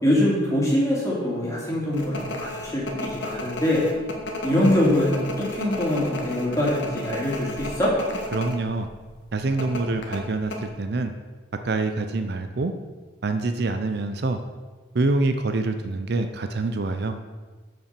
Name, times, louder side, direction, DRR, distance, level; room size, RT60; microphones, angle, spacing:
voice 1, 0.0-3.8 4.4-7.9, left 1 dB, 15° left, -6 dB, 2.5 m, -23 dB
sound 1, 1.9-8.6 8.8-9.0 9.6-10.6, left 2 dB, 65° left, 1.4 m, -33 dB
voice 2, 8.3-8.9 9.3-11.1 11.6-12.7 13.2-14.4 14.9-17.2, right 2 dB, 55° right, 7 dB, 0.5 m, -25 dB
7.3 x 5.7 x 6.7 m, 1.3 s
head